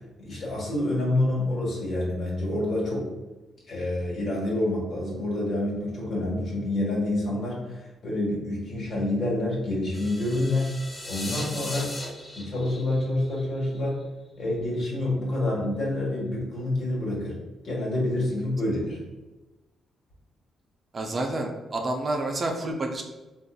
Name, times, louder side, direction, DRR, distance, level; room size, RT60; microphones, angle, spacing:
voice 1, 0.2-3.1 3.7-10.8 11.1-11.9 12.4-14.0 14.4-17.4 17.6-19.0, left 1 dB, 60° left, -4 dB, 1.4 m, -27 dB
sound 1, 9.9-14.0, left 1 dB, 35° left, 0.9 m, -38 dB
voice 2, 20.9-23.0, right 2 dB, 45° right, 2 dB, 0.5 m, -29 dB
3.7 x 2.5 x 2.3 m, 1.1 s
supercardioid pair, 65°, 0 cm